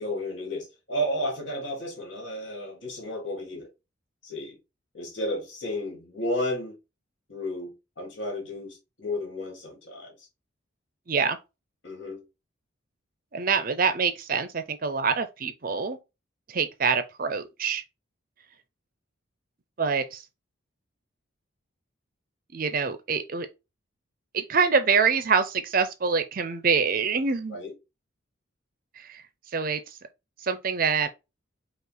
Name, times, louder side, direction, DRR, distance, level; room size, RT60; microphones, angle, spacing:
voice 1, 0.0-3.7 4.2-4.6 4.9-6.8 7.3-10.3 11.8-12.2 27.5-27.7, left 1 dB, 65° left, 2.1 m, -32 dB
voice 2, 13.3-16.0 16.5-17.8 19.8-20.2 22.5-23.5 24.3-27.6 29.0-29.2 29.5-29.8 30.4-31.1, right 5 dB, 45° right, 0.6 m, -25 dB
5.5 x 2.4 x 3.9 m
head